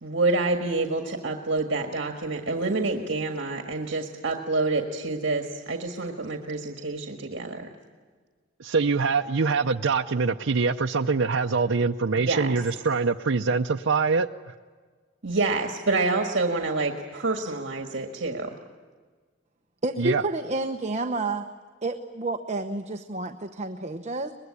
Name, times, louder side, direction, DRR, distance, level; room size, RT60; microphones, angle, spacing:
voice 1, 0.0-7.7 12.1-12.6 15.2-18.5, right 3 dB, 65° right, 4 dB, 1.8 m, -27 dB
voice 2, 8.6-14.5 20.0-20.2, right 4 dB, 85° right, 3 dB, 0.7 m, -24 dB
voice 3, 19.8-21.5 21.8-24.3, right 2 dB, 35° right, 5 dB, 1.0 m, -30 dB
24.5 x 21.0 x 9.8 m, 1.5 s
head